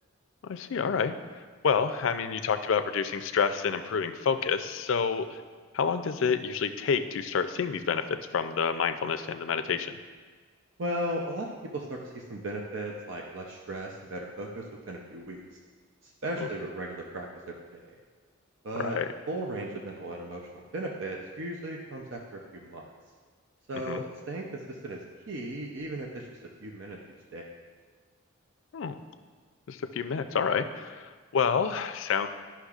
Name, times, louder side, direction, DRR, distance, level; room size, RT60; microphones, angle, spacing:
voice 1, 0.4-1.2 1.6-5.4 5.7-9.9 18.8-19.1 23.7-24.0 28.7-29.0 29.7-32.3, left 6 dB, 70° left, 10 dB, 0.4 m, -28 dB
voice 2, 10.8-15.4 16.0-17.9 18.6-19.0 19.3-22.9 23.7-26.3 26.6-27.0 27.3-27.5, right 1 dB, 65° right, -1 dB, 0.6 m, -36 dB
11.5 x 5.7 x 2.4 m, 1.5 s
head